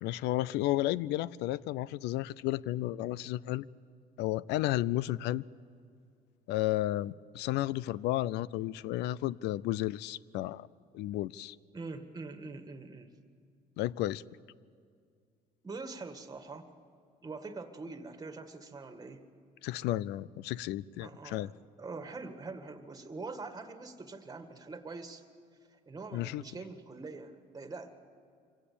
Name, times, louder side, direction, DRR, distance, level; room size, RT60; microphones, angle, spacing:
voice 1, 0.0-3.7 4.2-5.4 6.5-10.7 10.9-11.6 13.8-14.2 19.6-21.5 26.1-26.4, left 15 dB, 90° left, 21 dB, 0.5 m, -32 dB
voice 2, 11.7-13.1 15.6-16.7 17.2-19.2 21.0-21.5 21.8-25.2 25.7-27.9, right 3 dB, 20° right, 7 dB, 1.9 m, -44 dB
24.5 x 17.0 x 8.7 m, 2.3 s
cardioid pair, 110°, 17 cm